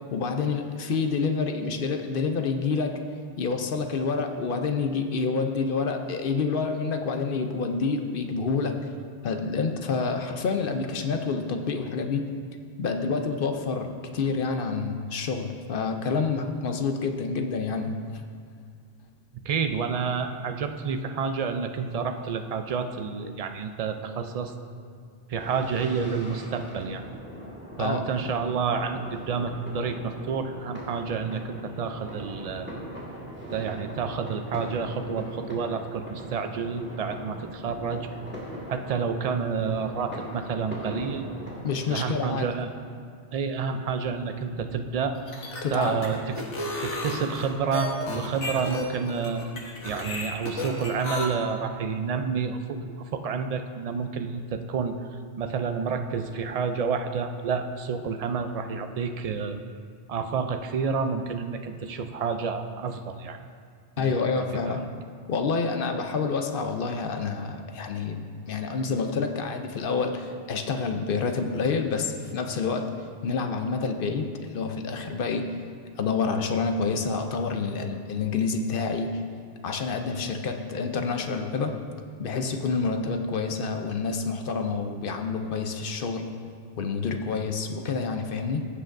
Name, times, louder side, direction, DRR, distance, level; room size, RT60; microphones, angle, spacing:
voice 1, 0.1-3.0 3.4-8.7 9.2-12.3 12.8-18.0 27.8-28.0 41.6-42.5 45.6-46.0 64.0-64.8 65.3-72.9 73.2-75.6 76.0-79.2 79.6-81.8 82.2-86.3 86.8-88.7, left 4 dB, 55° left, 5 dB, 0.7 m, -28 dB
voice 2, 19.4-24.5 25.3-27.0 27.8-32.7 33.5-38.1 38.7-41.3 41.9-42.7 43.3-45.2 45.7-46.4 46.8-49.4 49.8-59.6 60.1-63.4 64.0-64.3 64.6-64.8, right 5 dB, 65° right, 7 dB, 0.3 m, -29 dB
sound 1, 25.4-42.1, equal, 10° right, 1.8 m, -40 dB
sound 2, 45.2-51.2, left 2 dB, 80° left, 1.5 m, -33 dB
15.0 x 7.5 x 2.6 m, 2.2 s
omnidirectional pair, 1.2 m